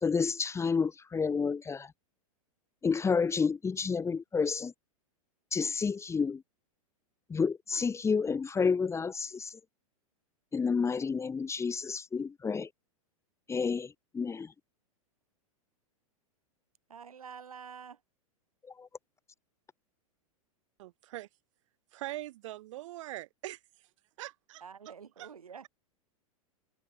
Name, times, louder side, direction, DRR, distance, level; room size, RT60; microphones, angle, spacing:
voice 1, 0.0-1.9 2.8-4.7 5.5-6.4 7.3-9.6 10.5-12.7 13.5-14.5 18.8-18.9, left 5 dB, 15° left, 2.0 m, -30 dB
voice 2, 16.9-18.0 24.6-25.7, right 7 dB, 75° right, 7.7 m, -47 dB
voice 3, 20.8-21.3 21.9-23.6 24.2-25.3, right 16 dB, 60° right, 4.6 m, -42 dB
figure-of-eight pair, 100°, 18 cm